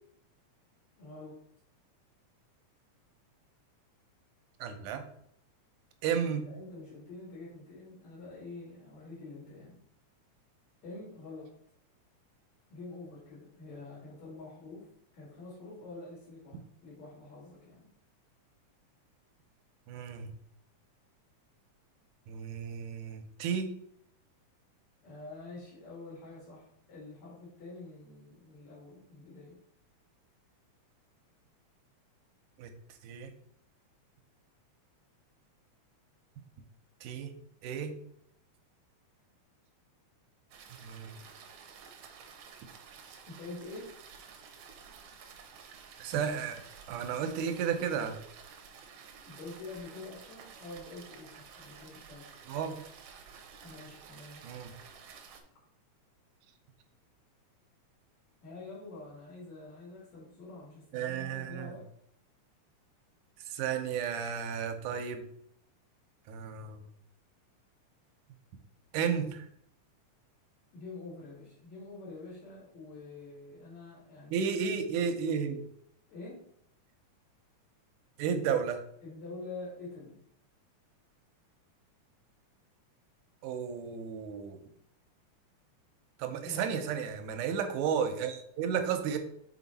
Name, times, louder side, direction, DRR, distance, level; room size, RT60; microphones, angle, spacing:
voice 1, 1.0-1.4 6.4-9.8 10.8-11.5 12.7-14.9 15.1-17.9 25.0-29.6 43.3-43.9 49.2-52.2 53.6-54.4 58.4-61.9 70.7-74.4 76.1-76.4 79.0-80.2 86.4-86.9, left 3 dB, 65° left, -6 dB, 3.3 m, -46 dB
voice 2, 4.6-5.0 6.0-6.5 19.9-20.3 22.3-23.7 32.6-32.7 33.0-33.3 37.0-37.3 37.6-37.9 40.8-41.2 46.0-46.6 46.9-48.2 52.5-52.8 54.4-54.7 60.9-61.8 63.5-65.2 66.3-66.8 68.9-69.5 74.3-75.6 78.2-78.8 83.4-84.6 86.2-89.2, right 7 dB, 90° right, 7 dB, 2.2 m, -33 dB
sound 1, 40.5-55.4, right 6 dB, 70° right, 1.5 m, -52 dB
6.2 x 4.4 x 4.0 m, 0.70 s
omnidirectional pair, 3.5 m